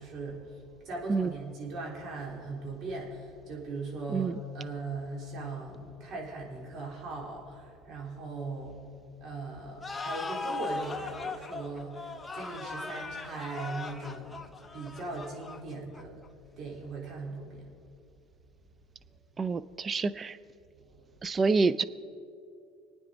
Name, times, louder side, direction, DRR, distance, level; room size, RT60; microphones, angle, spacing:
voice 1, 0.0-8.9 9.2-12.0 12.3-16.2 16.6-17.7 20.8-21.4, right 3 dB, 55° right, -2 dB, 3.8 m, -39 dB
sound 1, 9.8-16.3, left 3 dB, 15° left, 1.0 m, -39 dB
voice 2, 19.4-20.4 21.2-21.8, right 4 dB, 30° right, 15 dB, 0.6 m, -27 dB
25.5 x 9.5 x 4.0 m, 2.5 s
supercardioid pair, 90°, 0 cm